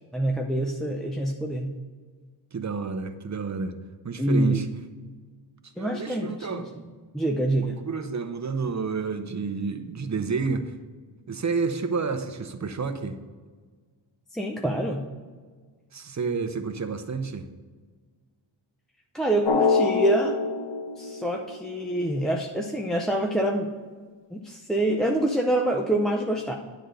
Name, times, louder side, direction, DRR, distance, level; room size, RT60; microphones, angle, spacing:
voice 1, 0.1-1.8 4.2-4.6 5.8-6.9 7.1-7.8 14.3-15.1 19.1-20.3 21.0-23.7 24.3-26.5, right 1 dB, ahead, 1 dB, 0.5 m, -26 dB
voice 2, 2.5-3.8 4.0-4.7 5.6-6.9 7.6-10.7 11.3-13.2 15.9-17.5, right 5 dB, 35° right, 8 dB, 0.7 m, -30 dB
Drum, 19.4-22.0, left 4 dB, 65° left, 0.9 m, -26 dB
10.0 x 3.9 x 6.7 m, 1.5 s
wide cardioid pair, 115°, 47 cm